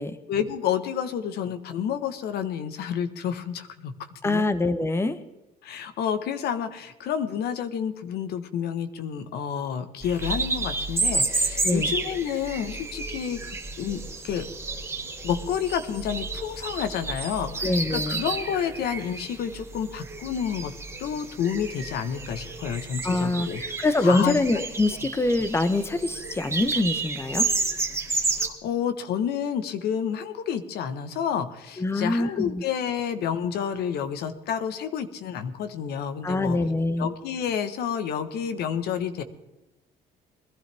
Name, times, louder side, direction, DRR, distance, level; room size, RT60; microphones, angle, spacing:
voice 1, 0.3-3.9 4.2-4.4 5.6-14.5 15.2-20.7 21.0-24.4 24.9-25.0 28.4-36.6 37.0-39.2, left 8 dB, 75° left, 10 dB, 1.3 m, -29 dB
voice 2, 4.2-5.2 11.6-11.9 17.6-18.2 23.0-27.5 31.8-32.6 36.2-37.1, left 2 dB, 15° left, 12 dB, 0.9 m, -24 dB
sound 1, 10.0-28.5, right 3 dB, 15° right, 2.1 m, -31 dB
21.0 x 12.0 x 3.5 m, 0.98 s
cardioid pair, 110°, 17 cm